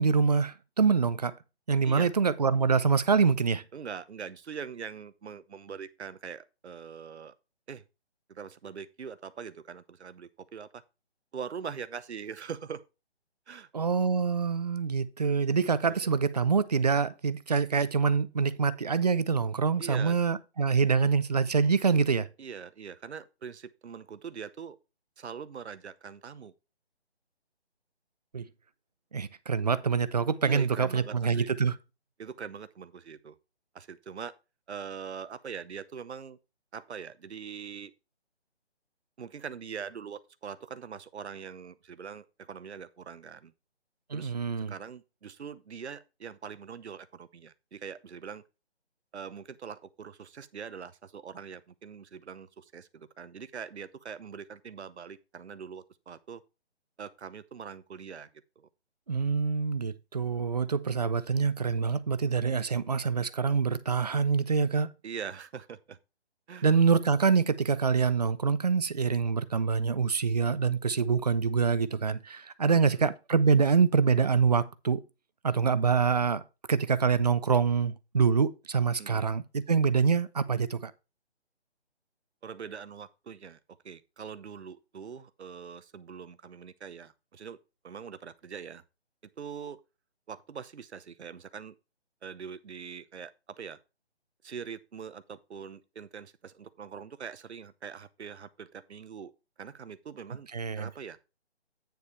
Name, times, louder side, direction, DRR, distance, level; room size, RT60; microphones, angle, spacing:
voice 1, 0.0-1.3 1.7-3.6 13.7-22.3 28.3-28.5 29.1-31.8 44.1-44.7 59.1-64.9 66.6-75.0 75.4-76.4 76.7-80.9 100.5-100.9, right 5 dB, 40° right, 0.5 m, -25 dB
voice 2, 3.7-7.3 7.7-7.8 8.3-10.8 11.3-12.8 13.5-13.7 15.8-16.2 19.8-20.2 22.4-24.8 25.2-26.5 30.4-31.5 32.2-33.4 33.7-34.3 34.7-36.4 36.7-37.9 39.2-43.5 44.1-44.3 44.7-48.4 49.1-56.4 57.0-58.3 58.6-58.7 65.0-66.0 66.5-66.7 72.7-73.0 79.0-79.3 82.4-87.6 87.8-88.8 89.4-89.8 90.3-91.7 92.2-93.8 94.4-99.3 99.6-100.5 100.7-101.2, right 6 dB, 75° right, 0.8 m, -42 dB
9.4 x 6.9 x 3.2 m
hypercardioid pair, 160°, 33 cm